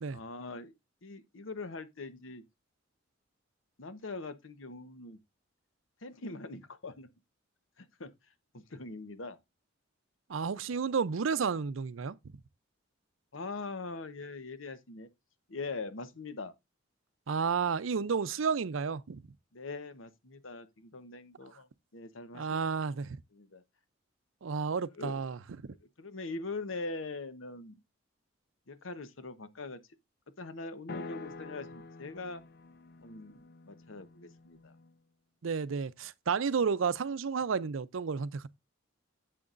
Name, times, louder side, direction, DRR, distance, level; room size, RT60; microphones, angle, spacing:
voice 1, 0.1-0.7 1.0-2.4 3.8-5.2 6.0-7.1 7.8-8.1 8.5-9.4 13.3-15.1 15.5-16.5 19.5-22.6 23.3-23.6 24.9-25.2 25.7-27.8 28.7-29.8 30.4-32.4 33.0-34.8, left 3 dB, 90° left, 1.0 m, -42 dB
voice 2, 10.3-12.2 17.3-19.2 22.3-23.2 24.4-25.4 35.4-38.5, right 5 dB, 85° right, 0.5 m, -31 dB
sound 1, 30.9-35.0, left 3 dB, 55° left, 0.5 m, -47 dB
11.0 x 7.7 x 2.5 m
head